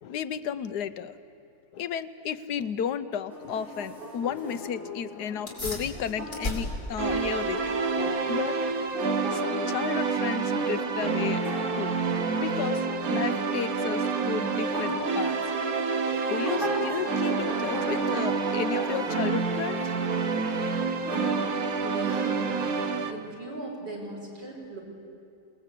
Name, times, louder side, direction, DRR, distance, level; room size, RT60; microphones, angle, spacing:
voice 1, 0.0-1.1 1.7-7.7 8.3-8.6 9.3-11.4 11.8-12.0 12.4-15.4 16.3-19.8, left 8 dB, 75° left, 12 dB, 1.3 m, -33 dB
sound 1, 3.3-23.1, left 1 dB, ahead, 7.3 m, -38 dB
sound 2, 5.5-15.4, left 2 dB, 30° left, 4.1 m, -41 dB
sound 3, 7.0-23.1, right 5 dB, 60° right, 1.5 m, -28 dB
voice 2, 21.8-22.6 23.1-24.8, right 2 dB, 90° right, -2 dB, 5.6 m, -38 dB
27.5 x 19.5 x 8.4 m, 2.6 s
omnidirectional pair, 1.8 m